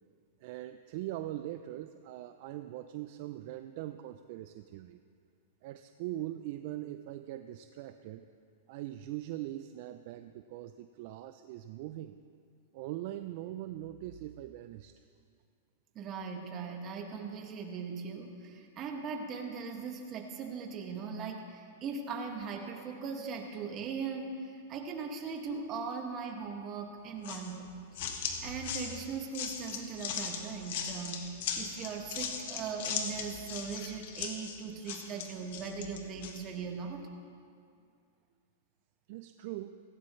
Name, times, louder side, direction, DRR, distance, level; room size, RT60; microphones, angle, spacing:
voice 1, 0.4-5.0 5.6-8.3 8.7-12.2 12.7-15.0 39.1-39.8, right 14 dB, 55° right, 9 dB, 0.5 m, -41 dB
voice 2, 16.0-27.7 28.0-37.1, right 5 dB, 35° right, 2 dB, 1.9 m, -39 dB
sound 1, 27.2-36.4, left 7 dB, 65° left, 1.7 m, -38 dB
16.5 x 16.5 x 3.2 m, 2.3 s
hypercardioid pair, 125°, 0 cm